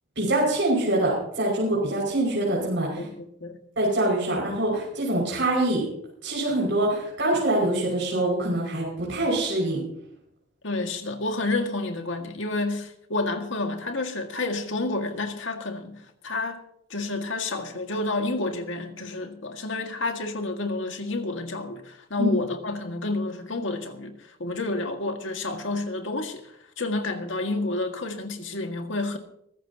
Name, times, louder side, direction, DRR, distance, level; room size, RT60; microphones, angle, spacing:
voice 1, 0.2-3.1 3.8-5.8 6.2-9.8 22.2-22.3, right 1 dB, 65° right, 5.8 m, -24 dB
voice 2, 3.0-3.6 10.6-16.6 16.9-29.2, left 2 dB, 70° left, 1.9 m, -30 dB
24.0 x 14.0 x 2.9 m
head